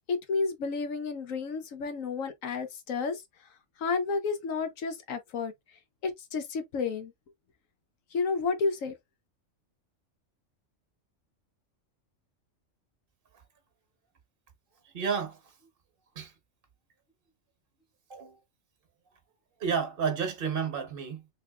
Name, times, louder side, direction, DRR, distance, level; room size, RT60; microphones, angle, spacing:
voice 1, 0.1-3.2 3.8-5.5 6.0-7.1 8.1-8.9, left 4 dB, 90° left, 1.2 m, -31 dB
voice 2, 14.8-15.5 16.1-16.3 18.1-18.4 19.6-21.3, right 6 dB, 50° right, 1.1 m, -31 dB
3.6 x 3.3 x 2.3 m
omnidirectional pair, 1.3 m